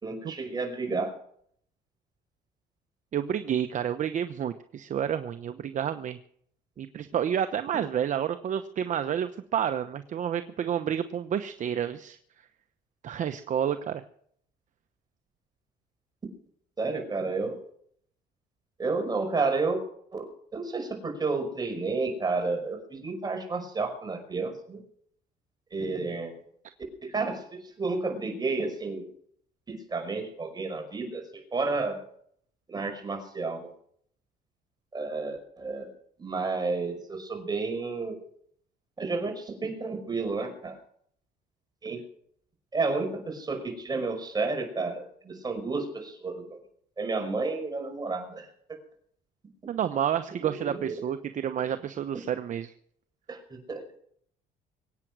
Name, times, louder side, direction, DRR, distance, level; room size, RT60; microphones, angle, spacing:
voice 1, 0.0-1.1 16.8-17.6 18.8-19.8 20.1-20.3 20.5-24.8 25.7-26.4 27.0-29.1 29.7-32.1 32.7-33.7 34.9-35.9 36.2-38.2 39.0-40.8 41.8-42.0 42.7-46.5 47.0-48.5 50.4-51.1 53.3-53.8, right 3 dB, 25° right, 4 dB, 5.5 m, -31 dB
voice 2, 3.1-6.2 6.8-12.2 13.0-14.0 49.7-52.7, right 9 dB, 50° right, 9 dB, 1.0 m, -30 dB
23.5 x 9.2 x 6.2 m, 0.64 s
cardioid pair, 110°, 17 cm